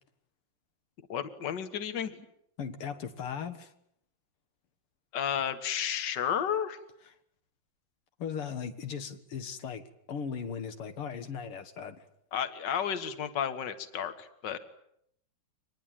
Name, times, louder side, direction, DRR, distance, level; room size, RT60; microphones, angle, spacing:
voice 1, 1.1-2.2 5.1-6.8 12.3-14.6, left 8 dB, 55° left, 10 dB, 2.1 m, -32 dB
voice 2, 2.6-3.7 8.2-9.8 10.1-12.0, left 7 dB, 85° left, 8 dB, 2.5 m, -37 dB
25.0 x 20.5 x 9.2 m, 0.73 s
omnidirectional pair, 2.4 m